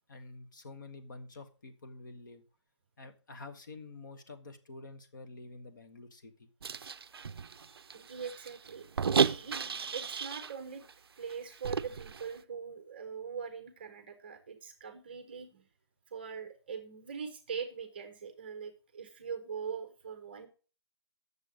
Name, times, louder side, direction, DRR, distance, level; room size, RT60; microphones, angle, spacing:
voice 1, 0.1-2.4 3.0-6.5 9.4-9.6, left 3 dB, 45° left, 6 dB, 1.3 m, -48 dB
sound 1, 6.6-10.6 10.9-11.0 11.3-12.3, right 6 dB, 60° right, 0.4 m, -33 dB
voice 2, 7.4-8.9 9.2-10.8 11.2-15.7 16.1-20.5, right 6 dB, 20° right, 9 dB, 0.7 m, -42 dB
9.0 x 6.8 x 5.0 m, 0.38 s
hypercardioid pair, 175°, 14 cm